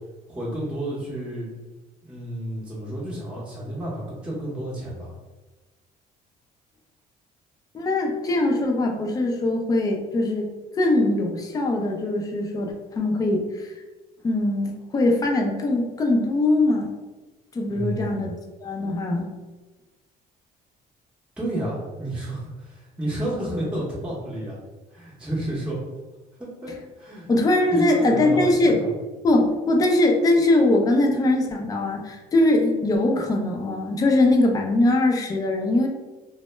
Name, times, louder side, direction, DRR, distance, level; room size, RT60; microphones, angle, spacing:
voice 1, 0.3-1.5 2.0-5.1 17.7-18.3 21.4-24.6 24.9-25.8 26.4-26.7 27.0-27.3 27.7-28.9, right 1 dB, 5° right, -8 dB, 0.7 m, -31 dB
voice 2, 7.7-10.5 10.7-13.7 14.2-16.9 17.5-18.3 18.6-19.3 27.3-28.8 29.2-35.9, left 2 dB, 20° left, 1 dB, 0.4 m, -21 dB
2.0 x 2.0 x 3.1 m, 1.2 s
cardioid pair, 110°, 17 cm